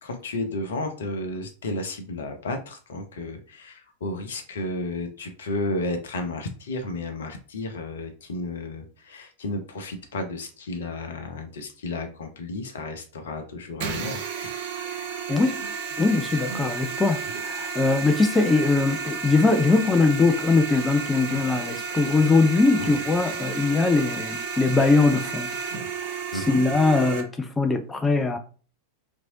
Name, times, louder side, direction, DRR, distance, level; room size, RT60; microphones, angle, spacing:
voice 1, 0.0-14.5 22.8-22.9 26.3-26.6, left 2 dB, 65° left, 0.6 m, -32 dB
sound 1, 13.8-27.2, right 5 dB, 50° right, 0.5 m, -32 dB
voice 2, 15.3-15.6 16.0-25.5 26.3-28.4, left 3 dB, 15° left, 0.3 m, -21 dB
2.9 x 2.6 x 2.7 m
figure-of-eight pair, 90°, 0 cm